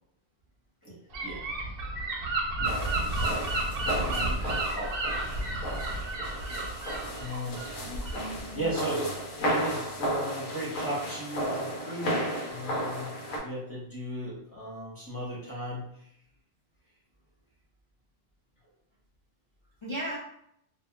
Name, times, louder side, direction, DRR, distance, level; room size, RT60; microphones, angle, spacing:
voice 1, 0.8-1.5 3.7-4.3 4.7-5.0 6.5-6.8 7.2-7.7 8.5-9.2 9.5-15.9, right 1 dB, 15° right, -8 dB, 0.6 m, -36 dB
Gull seagull / Wind, 1.1-8.4, right 2 dB, 55° right, 0.7 m, -31 dB
sound 1, 2.6-13.4, equal, 90° left, 1.1 m, -34 dB
voice 2, 3.8-4.4 5.5-5.7 5.9-6.2 7.8-8.7 19.8-20.2, equal, 40° left, -9 dB, 0.4 m, -39 dB
2.8 x 2.3 x 2.3 m, 0.72 s
omnidirectional pair, 1.4 m